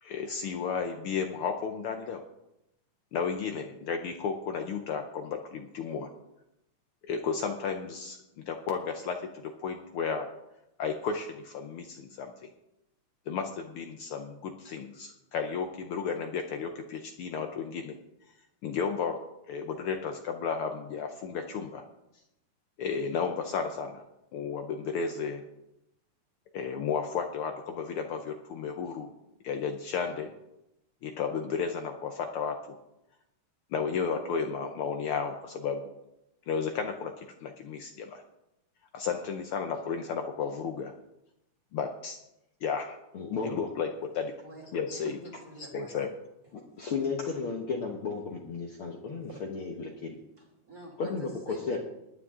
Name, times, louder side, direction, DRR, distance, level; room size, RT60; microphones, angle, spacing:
voice 1, 0.0-2.2 3.1-6.1 7.0-10.3 10.8-12.3 13.3-18.0 18.6-19.2 19.5-21.8 22.8-24.0 24.3-25.4 26.5-29.1 29.4-30.3 31.0-32.8 33.7-35.9 36.5-38.2 38.9-40.9 41.7-42.2 42.6-43.0 43.4-43.9 44.1-44.3 44.7-45.2 45.7-46.1, left 6 dB, 90° left, 5 dB, 1.2 m, -33 dB
voice 2, 43.1-43.7 46.8-50.2 51.0-51.8, left 5 dB, 60° left, 1 dB, 1.5 m, -33 dB
voice 3, 44.4-46.0 49.3-49.4 50.4-51.8, equal, 30° right, -1 dB, 2.8 m, -47 dB
20.5 x 9.6 x 3.7 m, 0.87 s
omnidirectional pair, 3.5 m